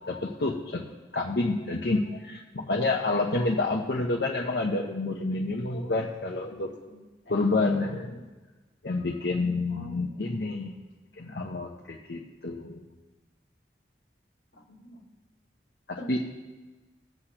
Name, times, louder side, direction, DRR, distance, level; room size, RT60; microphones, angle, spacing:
voice 1, 0.0-6.7 7.3-8.2 8.8-10.7 11.2-12.9 15.9-16.2, left 2 dB, 70° left, -1 dB, 0.9 m, -29 dB
voice 2, 5.7-6.0 6.4-7.1 7.7-8.0 9.7-10.2 14.6-15.1 16.0-16.1, left 1 dB, 90° left, 0 dB, 1.7 m, -46 dB
20.0 x 8.0 x 2.9 m, 1.2 s
head